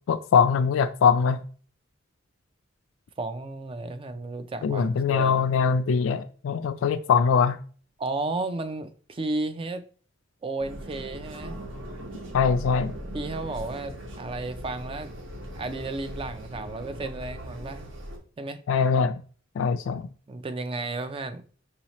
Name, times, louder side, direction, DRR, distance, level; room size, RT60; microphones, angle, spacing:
voice 1, 0.1-1.4 4.6-7.6 12.3-12.9 18.7-19.2 19.6-20.1, left 6 dB, 80° left, 0.3 m, -22 dB
voice 2, 3.2-5.5 8.0-9.9 10.4-11.6 13.1-15.1 15.6-17.9 18.4-18.6 20.3-21.4, right 2 dB, 30° right, 0.4 m, -33 dB
sound 1, 10.6-18.2, equal, 70° right, 1.1 m, -39 dB
5.6 x 2.8 x 3.0 m
head